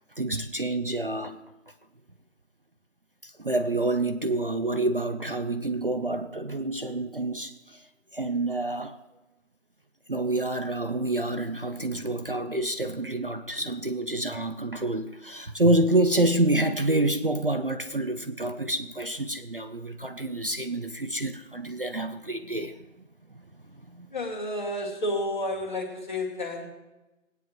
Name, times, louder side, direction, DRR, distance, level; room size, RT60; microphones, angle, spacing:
voice 1, 0.2-1.4 3.2-7.9 8.1-9.0 10.1-22.9 23.3-23.4 23.9-24.1, right 2 dB, 45° right, 8 dB, 0.6 m, -28 dB
voice 2, 24.1-26.7, left 1 dB, 35° left, 2 dB, 2.2 m, -31 dB
20.0 x 9.2 x 3.0 m, 1.0 s
figure-of-eight pair, 170°, 40 cm